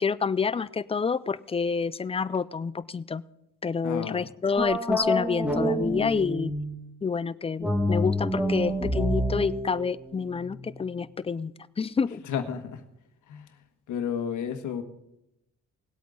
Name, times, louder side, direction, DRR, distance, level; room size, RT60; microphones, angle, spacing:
voice 1, 0.0-3.2 3.6-6.5 7.0-12.2, left 5 dB, 20° left, 16 dB, 0.4 m, -28 dB
voice 2, 3.8-4.2 12.2-12.8 13.3-13.5 13.9-14.8, left 8 dB, 80° left, 7 dB, 1.5 m, -32 dB
sound 1, 4.6-6.8 7.6-10.9, equal, 5° right, 2.1 m, -28 dB
19.5 x 8.3 x 4.0 m, 0.84 s
cardioid pair, 90°, 30 cm